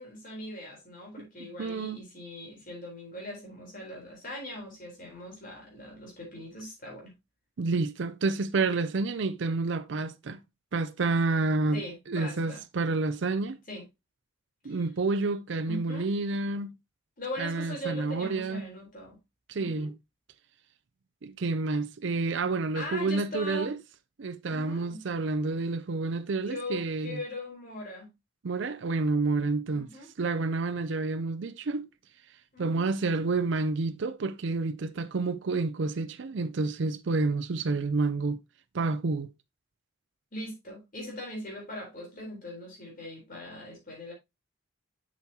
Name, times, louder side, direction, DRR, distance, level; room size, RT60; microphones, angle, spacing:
voice 1, 0.0-7.1 11.7-12.6 13.7-13.8 14.6-14.8 15.7-16.1 17.2-19.2 19.6-19.9 22.8-23.7 24.5-25.0 26.5-28.1 29.7-30.1 32.5-32.9 40.3-44.1, left 1 dB, 40° left, 3.7 m, -40 dB
voice 2, 1.4-2.0 7.6-10.4 10.7-13.6 14.6-16.7 17.4-18.7 19.5-19.9 21.2-23.8 24.2-27.2 28.4-29.9 30.2-31.9 32.6-38.4 38.7-39.3, right 3 dB, 60° right, 0.5 m, -29 dB
7.1 x 6.3 x 2.8 m
head